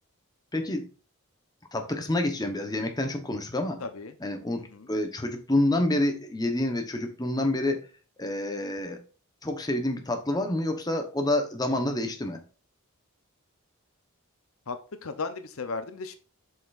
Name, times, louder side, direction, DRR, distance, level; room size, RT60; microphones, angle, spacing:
voice 1, 0.5-0.9 1.7-3.8 4.2-7.8 8.2-9.0 9.4-12.4, left 1 dB, 15° left, 4 dB, 1.0 m, -28 dB
voice 2, 3.8-4.2 4.6-4.9 14.7-16.2, left 4 dB, 70° left, 9 dB, 0.8 m, -36 dB
7.6 x 5.6 x 2.5 m, 0.36 s
head